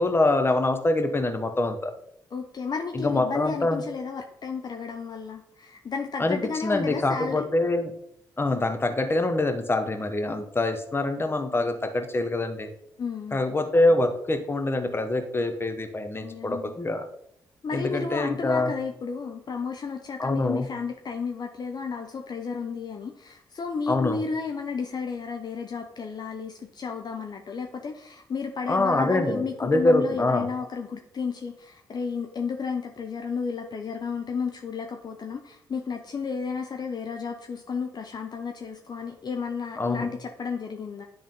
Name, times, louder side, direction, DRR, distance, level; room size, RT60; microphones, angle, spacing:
voice 1, 0.0-1.9 2.9-3.8 6.2-7.9 8.4-12.7 13.3-17.0 17.7-18.7 20.2-20.7 23.9-24.2 28.7-30.5 39.8-40.1, left 2 dB, 25° left, 6 dB, 1.1 m, -25 dB
voice 2, 2.3-7.5 13.0-13.4 16.2-16.7 17.6-41.0, left 5 dB, 45° left, 3 dB, 0.7 m, -32 dB
10.5 x 3.5 x 3.7 m, 0.74 s
hypercardioid pair, 40°, 10 cm